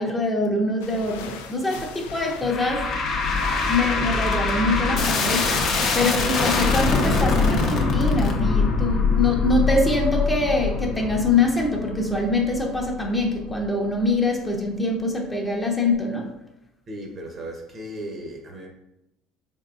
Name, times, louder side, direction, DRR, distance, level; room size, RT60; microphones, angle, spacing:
voice 1, 0.0-2.9 3.7-5.6 5.9-16.3, left 2 dB, 15° left, 0 dB, 0.8 m, -24 dB
sound 1, 0.8-4.5 5.3-6.6, left 5 dB, 90° left, 0.4 m, -41 dB
sound 2, 2.4-13.7, left 4 dB, 55° left, 0.7 m, -23 dB
voice 2, 16.9-18.7, right 1 dB, 40° right, 1 dB, 1.0 m, -36 dB
3.9 x 3.6 x 2.5 m, 0.86 s
supercardioid pair, 85°, 0 cm